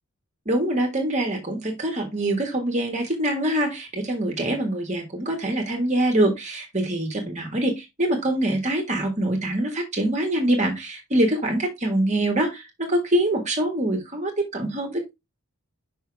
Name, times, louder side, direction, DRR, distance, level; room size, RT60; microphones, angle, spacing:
voice 1, 0.4-15.1, right 1 dB, 30° right, 3 dB, 1.6 m, -24 dB
5.7 x 5.6 x 3.4 m, 0.21 s
head